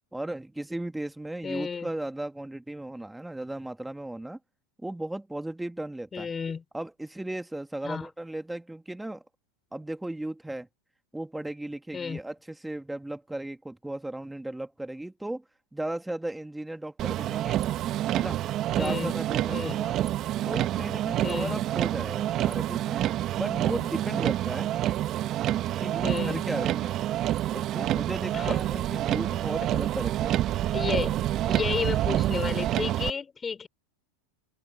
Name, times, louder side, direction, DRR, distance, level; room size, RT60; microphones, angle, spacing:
voice 1, 0.1-4.4 4.8-6.3 6.7-9.2 9.7-10.7 11.1-15.4 15.7-17.6 18.1-18.4 18.7-20.0 20.4-23.0 23.3-24.7 25.8-27.0 27.5-30.4, right 1 dB, 5° right, 1.9 m, -36 dB
voice 2, 1.4-1.9 6.1-6.6 7.8-8.1 11.9-12.2 18.8-19.1 19.5-19.7 21.2-21.6 26.0-26.4 28.3-28.6 30.7-31.2 31.5-33.7, left 5 dB, 20° left, 4.2 m, -32 dB
Motor vehicle (road), 17.0-33.1, right 13 dB, 40° right, 1.5 m, -28 dB
hypercardioid pair, 105°, 0 cm